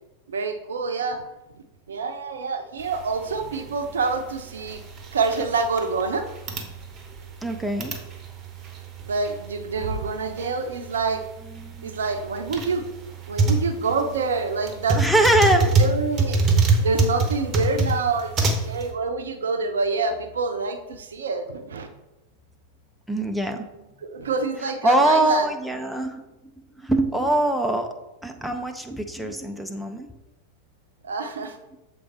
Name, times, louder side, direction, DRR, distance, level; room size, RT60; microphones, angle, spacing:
voice 1, 0.3-1.2 1.9-4.8 5.1-6.3 9.1-11.2 11.8-12.9 13.3-15.0 15.8-16.4 16.8-21.9 24.0-25.5 31.0-31.6, right 4 dB, 65° right, 7 dB, 0.6 m, -27 dB
sound 1, 2.8-18.9, right 3 dB, 30° right, 1.0 m, -26 dB
voice 2, 7.4-7.9 11.5-11.9 14.9-15.8 23.1-23.7 24.8-26.3 26.8-27.9 28.2-30.1, right 1 dB, ahead, 3 dB, 0.6 m, -23 dB
6.9 x 3.9 x 4.3 m, 0.98 s
figure-of-eight pair, 90°, 0 cm